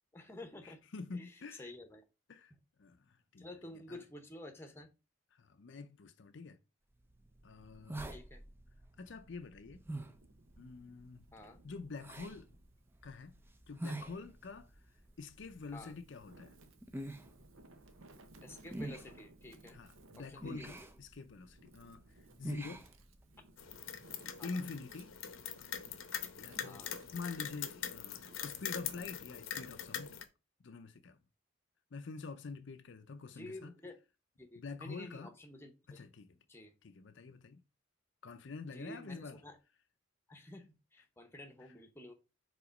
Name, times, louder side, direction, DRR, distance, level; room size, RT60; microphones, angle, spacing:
voice 1, 0.1-0.8 1.1-1.3 1.6-2.0 3.4-4.9 8.1-8.4 11.3-11.6 15.7-16.0 18.4-19.8 20.1-20.7 24.4-24.6 26.6-27.0 33.3-34.0 34.4-36.0 36.5-36.7 38.7-39.6 40.3-42.1, left 1 dB, 10° left, 0.8 m, -51 dB
voice 2, 0.6-1.7 2.3-2.5 2.8-4.0 5.3-6.6 7.4-8.2 9.0-9.8 10.6-11.2 11.6-12.5 13.0-13.4 13.7-14.8 15.2-16.6 19.7-22.9 24.4-25.1 26.4-30.2 30.6-31.2 31.9-33.7 34.6-35.4 35.9-36.4 36.8-37.6 38.2-39.4 40.4-40.5 41.6-41.7, left 4 dB, 60° left, 0.5 m, -47 dB
sound 1, 7.0-23.6, right 1 dB, 10° right, 0.4 m, -48 dB
Wind, 9.8-12.6 13.2-14.4 15.1-29.0, right 2 dB, 75° right, 0.9 m, -62 dB
sound 2, 23.6-30.2, left 9 dB, 80° left, 0.8 m, -43 dB
4.9 x 3.9 x 5.1 m
head